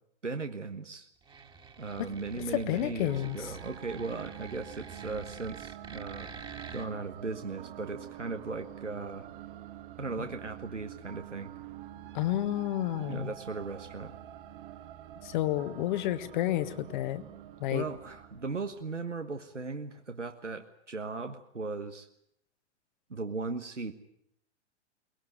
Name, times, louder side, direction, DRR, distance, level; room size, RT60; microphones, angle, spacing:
voice 1, 0.2-1.1 1.8-6.3 6.7-9.3 10.0-11.5 13.1-14.1 17.7-22.1 23.1-23.9, right 3 dB, 80° right, 6 dB, 1.4 m, -37 dB
sound 1, 1.2-6.9, right 5 dB, 15° right, 2.1 m, -48 dB
voice 2, 2.5-3.4 12.1-13.3 15.2-17.2 17.6-17.9, left 14 dB, 40° left, 12 dB, 1.5 m, -30 dB
sound 2, 3.1-19.3, right 12 dB, 45° right, 1.6 m, -47 dB
23.0 x 19.5 x 9.2 m, 0.75 s
figure-of-eight pair, 105°, 36 cm